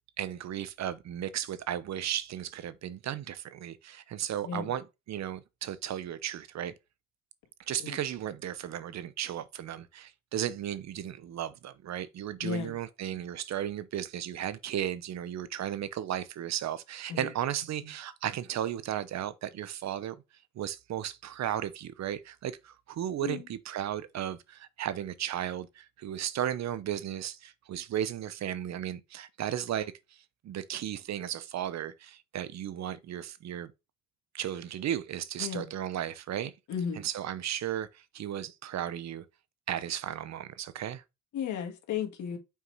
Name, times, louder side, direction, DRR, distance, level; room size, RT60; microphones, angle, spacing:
voice 1, 0.2-6.7 7.7-20.2 20.5-33.7 34.3-36.5 36.9-39.3 39.7-41.0, right 10 dB, 65° right, 0.8 m, -35 dB
voice 2, 12.4-12.7 17.1-17.3 23.2-23.4 35.4-35.7 36.7-37.0 41.3-42.4, left 7 dB, 80° left, 1.8 m, -34 dB
5.7 x 4.7 x 4.0 m
cardioid pair, 90°, 30 cm